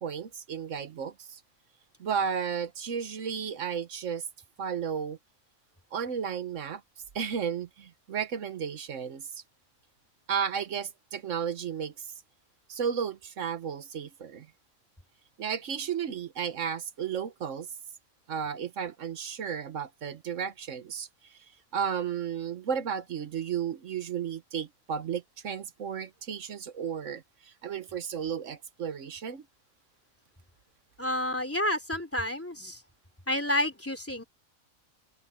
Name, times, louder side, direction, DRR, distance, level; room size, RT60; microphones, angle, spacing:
voice 1, 0.0-1.4 2.0-4.2 4.6-5.2 5.9-6.8 7.1-9.4 10.3-11.9 12.7-14.5 15.4-17.7 18.3-21.1 21.7-27.2 27.6-29.4, right 7 dB, 60° right, 1.3 m, -33 dB
voice 2, 31.0-32.8 33.3-34.2, left 1 dB, 10° left, 3.2 m, -30 dB
open air
omnidirectional pair, 1.5 m